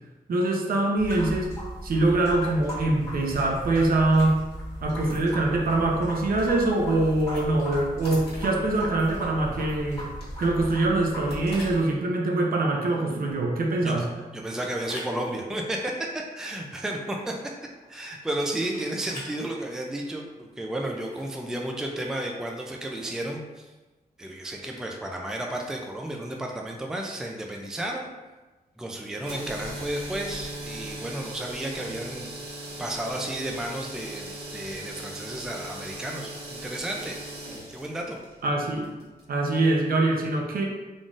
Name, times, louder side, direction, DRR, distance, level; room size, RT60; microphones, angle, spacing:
voice 1, 0.3-1.5 1.8-4.4 4.8-10.1 10.4-14.1 38.4-38.9 39.3-40.6, right 2 dB, 70° right, 0 dB, 0.6 m, -24 dB
sound 1, 1.0-11.7, equal, 15° left, 1.4 m, -37 dB
sound 2, 6.8-23.3, left 1 dB, 90° left, 1.5 m, -48 dB
voice 2, 14.3-17.3 17.9-23.7 24.2-28.1 28.8-32.3 32.8-37.2 37.7-38.2, right 1 dB, 5° right, 1 dB, 0.3 m, -32 dB
sound 3, 29.2-39.3, right 1 dB, 90° right, 1.2 m, -39 dB
3.7 x 3.7 x 2.4 m, 1.2 s
wide cardioid pair, 145°, 16 cm